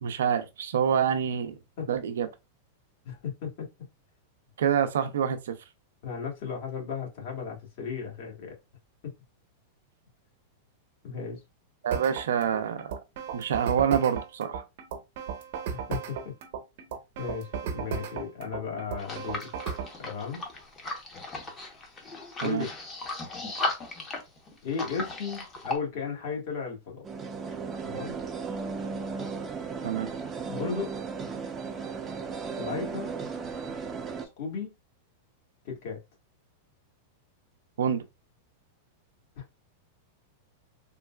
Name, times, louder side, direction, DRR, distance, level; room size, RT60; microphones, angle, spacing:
voice 1, 0.0-1.6 1.9-2.3 4.6-5.6 11.8-12.9 13.3-14.6 22.4-22.7 29.8-30.1 37.8-38.0, right 8 dB, 85° right, 0.5 m, -26 dB
voice 2, 3.0-3.7 6.0-8.6 9.0-9.1 11.0-11.4 15.9-16.3 17.2-19.5 20.0-20.4 22.4-22.7 24.6-27.0 27.8-28.2 29.9-30.0 30.5-30.9 32.6-33.1 34.4-34.7 35.6-36.0 39.3-39.4, left 6 dB, 60° left, 1.5 m, -35 dB
sound 1, 11.9-19.9, right 7 dB, 65° right, 0.8 m, -35 dB
sound 2, 19.0-25.8, left 2 dB, 25° left, 0.8 m, -36 dB
sound 3, 27.0-34.2, right 5 dB, 20° right, 0.5 m, -35 dB
3.7 x 2.3 x 2.2 m
hypercardioid pair, 135°, 0 cm